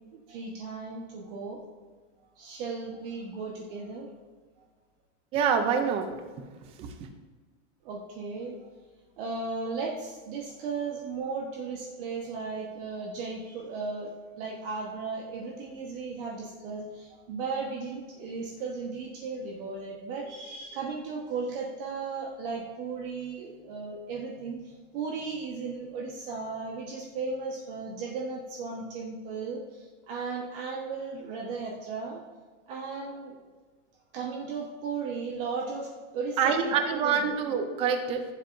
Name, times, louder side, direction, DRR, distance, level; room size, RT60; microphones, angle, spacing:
voice 1, 0.1-1.6 2.2-4.1 4.6-4.7 7.8-8.7 9.2-32.2 32.7-33.4 34.1-37.3, right 4 dB, 45° right, -1 dB, 1.2 m, -36 dB
voice 2, 5.3-6.1 6.8-6.9 36.4-38.2, right 6 dB, 15° right, 7 dB, 0.4 m, -26 dB
15.0 x 7.6 x 2.6 m, 1.4 s
supercardioid pair, 165°, 38 cm